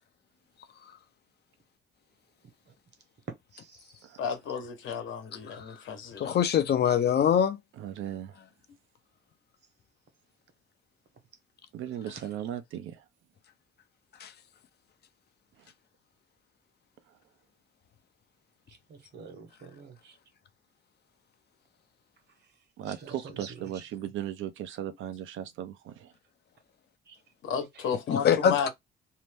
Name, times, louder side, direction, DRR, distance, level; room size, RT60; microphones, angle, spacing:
voice 1, 3.5-4.2 12.1-12.2 18.7-20.2 22.8-23.7 27.1-27.2 27.7-27.8, right 5 dB, 60° right, 1.1 m, -48 dB
voice 2, 4.2-6.3 27.4-28.7, left 6 dB, 75° left, 1.0 m, -33 dB
voice 3, 6.2-7.6 14.2-14.3 28.1-28.7, left 8 dB, 55° left, 0.6 m, -24 dB
voice 4, 7.8-8.4 11.7-13.0 15.6-15.7 22.8-26.1, right 11 dB, 80° right, 0.6 m, -37 dB
2.8 x 2.1 x 3.3 m
cardioid pair, 90°, 20 cm